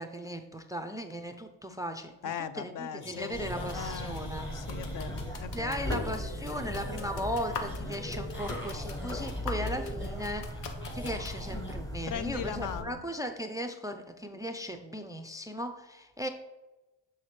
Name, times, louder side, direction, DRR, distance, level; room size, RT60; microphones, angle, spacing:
voice 1, 0.0-4.5 5.5-10.6 10.9-16.3, equal, 10° right, 7 dB, 0.3 m, -37 dB
voice 2, 2.2-5.8 12.1-13.0, left 8 dB, 50° left, 12 dB, 0.5 m, -39 dB
sound 1, 3.0-5.4 5.7-11.7, left 1 dB, 25° left, 1.9 m, -46 dB
sound 2, 3.3-12.8, left 1 dB, 10° left, 0.8 m, -37 dB
sound 3, 3.6-11.4, left 5 dB, 75° left, 0.8 m, -45 dB
6.4 x 5.7 x 3.1 m, 1.1 s
cardioid pair, 85°, 43 cm